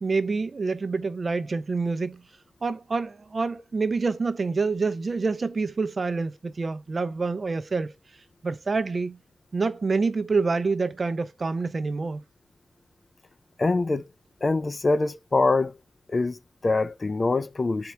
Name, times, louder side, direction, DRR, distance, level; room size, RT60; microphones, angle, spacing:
voice 1, 0.0-2.2 2.6-7.9 8.4-9.2 9.5-12.2, right 4 dB, 40° right, 0.5 m, -27 dB
voice 2, 13.6-14.0 14.4-15.8 16.1-17.9, left 3 dB, 35° left, 0.4 m, -24 dB
4.3 x 2.8 x 3.3 m
wide cardioid pair, 100°, 0 cm